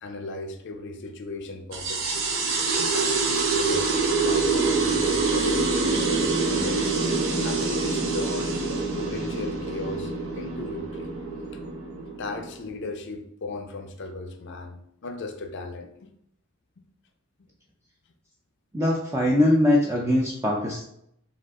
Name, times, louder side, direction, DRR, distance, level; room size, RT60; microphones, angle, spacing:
voice 1, 0.0-3.9 4.2-6.9 7.4-11.1 12.2-16.1, left 2 dB, 60° left, 6 dB, 0.6 m, -36 dB
sound 1, 1.7-12.7, right 4 dB, 70° right, 0.8 m, -25 dB
voice 2, 18.7-20.9, left 1 dB, 15° right, -2 dB, 0.5 m, -22 dB
5.0 x 2.4 x 3.6 m, 0.73 s
head